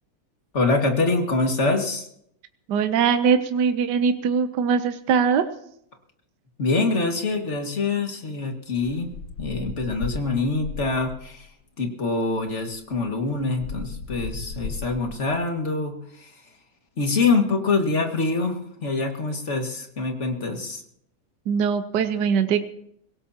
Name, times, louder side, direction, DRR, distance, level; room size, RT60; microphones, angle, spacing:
voice 1, 0.5-2.1 6.6-9.1 9.4-11.5 11.8-16.4 17.0-20.8, left 3 dB, 40° left, 3 dB, 2.2 m, -25 dB
voice 2, 2.7-5.4 21.5-22.6, right 6 dB, 70° right, 9 dB, 1.4 m, -21 dB
sound 1, 8.8-11.4 12.3-12.4 12.7-15.4, left 4 dB, 80° left, 1.9 m, -36 dB
24.5 x 17.5 x 2.9 m, 0.71 s
omnidirectional pair, 1.9 m